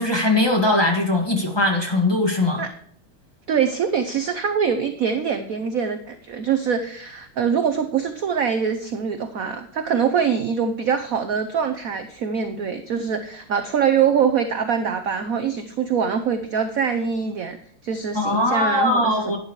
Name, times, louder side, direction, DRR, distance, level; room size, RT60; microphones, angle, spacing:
voice 1, 0.0-2.6 18.1-19.4, left 2 dB, 10° left, 1 dB, 1.8 m, -20 dB
voice 2, 3.5-17.6 17.8-19.1, right 7 dB, 60° right, 8 dB, 0.9 m, -23 dB
12.0 x 9.9 x 3.2 m, 0.63 s
omnidirectional pair, 2.3 m